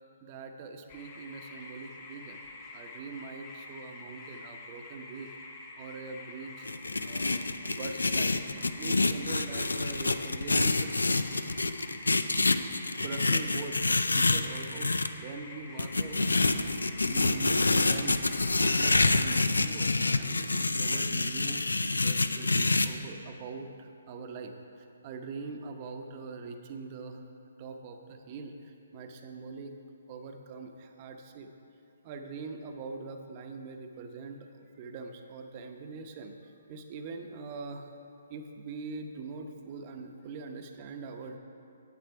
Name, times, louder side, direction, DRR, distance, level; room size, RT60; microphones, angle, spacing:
voice 1, 0.2-2.4 2.7-5.3 5.7-6.7 7.0-10.9 13.0-16.2 17.0-27.2 27.6-29.7 30.1-31.5 32.0-36.3 36.7-37.8 38.3-41.4, right 4 dB, 35° right, 5 dB, 0.9 m, -42 dB
sound 1, 0.9-19.2, left 3 dB, 30° left, 1.4 m, -47 dB
sound 2, 6.6-15.1 15.8-22.9, left 3 dB, 85° left, 0.4 m, -27 dB
9.5 x 8.5 x 4.7 m, 2.6 s
figure-of-eight pair, 140°, 0 cm